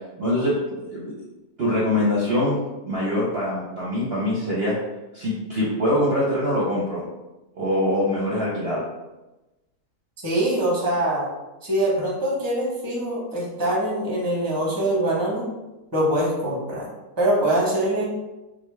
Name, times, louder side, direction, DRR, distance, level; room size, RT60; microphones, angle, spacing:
voice 1, 0.2-1.1 1.6-2.6 2.8-4.7 5.1-7.0 7.6-8.8 12.0-12.1, left 1 dB, 50° right, -6 dB, 0.8 m, -23 dB
voice 2, 10.2-11.3 11.6-15.4 15.9-16.9 17.2-18.0, right 1 dB, 15° right, -4 dB, 0.8 m, -23 dB
5.0 x 2.2 x 3.2 m, 1.0 s
omnidirectional pair, 1.7 m